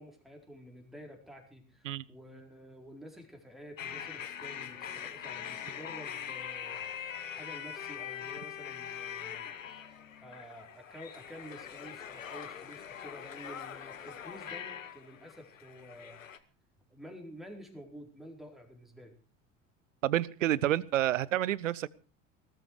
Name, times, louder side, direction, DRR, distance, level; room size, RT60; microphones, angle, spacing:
voice 1, 0.0-9.8 10.2-16.2 16.9-19.2, equal, ahead, 2 dB, 4.5 m, -50 dB
sound 1, 3.8-16.4, left 8 dB, 75° left, 1.2 m, -42 dB
voice 2, 20.0-21.9, right 13 dB, 70° right, 24 dB, 0.7 m, -29 dB
19.5 x 13.0 x 4.7 m, 0.35 s
figure-of-eight pair, 65°, 39 cm